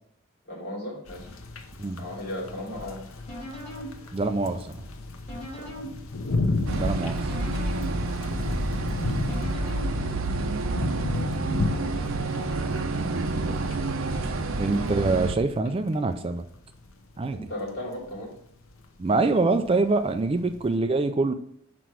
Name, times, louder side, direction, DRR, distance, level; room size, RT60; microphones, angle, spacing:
voice 1, 0.5-1.3 2.0-3.0 5.6-5.7 13.4-13.6 14.3-14.4 17.3-18.3, left 1 dB, 50° left, -3 dB, 3.1 m, -36 dB
sound 1, 1.1-20.8, left 2 dB, 90° left, 0.8 m, -34 dB
sound 2, 2.8-10.6, equal, 35° left, 3.0 m, -42 dB
voice 2, 4.1-4.8 6.7-7.3 14.6-16.4 17.2-17.4 19.0-21.3, right 3 dB, 25° right, 8 dB, 0.4 m, -25 dB
sound 3, 6.7-15.3, right 2 dB, 75° right, 0.7 m, -29 dB
6.1 x 4.6 x 6.3 m, 0.66 s
head